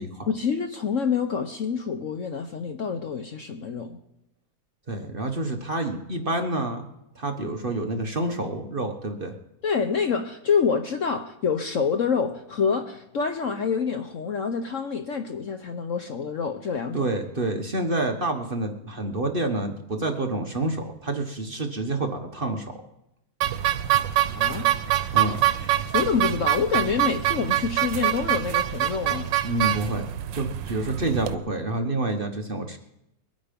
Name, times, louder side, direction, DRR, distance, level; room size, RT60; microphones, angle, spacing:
voice 1, 0.3-4.0 9.6-17.1 24.3-24.7 25.9-29.3, left 6 dB, 55° left, 7 dB, 1.0 m, -27 dB
voice 2, 4.9-6.8 7.1-9.3 16.9-22.8 25.1-25.4 29.4-30.0 30.3-32.8, right 2 dB, 35° right, 4 dB, 1.2 m, -28 dB
sound 1, 23.4-31.3, right 14 dB, 90° right, 1.4 m, -25 dB
22.5 x 9.3 x 5.2 m, 0.83 s
omnidirectional pair, 1.9 m